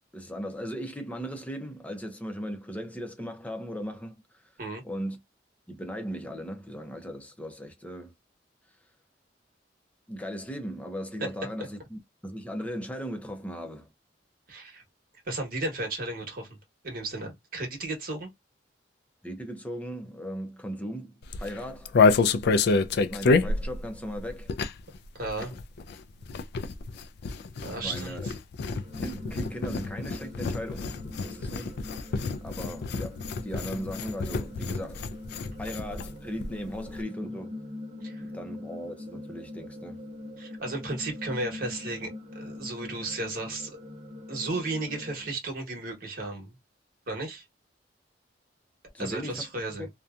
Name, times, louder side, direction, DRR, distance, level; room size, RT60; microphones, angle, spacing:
voice 1, 0.1-4.1 4.8-5.2 5.7-8.1 10.1-13.9 19.2-21.9 23.1-24.6 27.8-28.3 29.0-31.0 31.2-31.8 32.1-35.1 35.6-37.6 38.2-40.0 48.9-49.4 49.8-49.9, equal, 10° left, 0.6 m, -37 dB
voice 2, 14.5-14.8 15.3-16.6 16.8-18.3 25.1-25.5 27.6-28.3 38.0-38.2 40.4-43.7 44.3-46.5 47.1-47.4 49.0-49.9, right 2 dB, 55° right, 1.2 m, -34 dB
sound 1, 21.2-25.0 25.2-36.1 36.4-36.5 36.7-37.0, left 4 dB, 60° left, 0.3 m, -28 dB
sound 2, 28.8-45.3, left 2 dB, 40° right, 0.6 m, -42 dB
2.7 x 2.2 x 2.3 m
head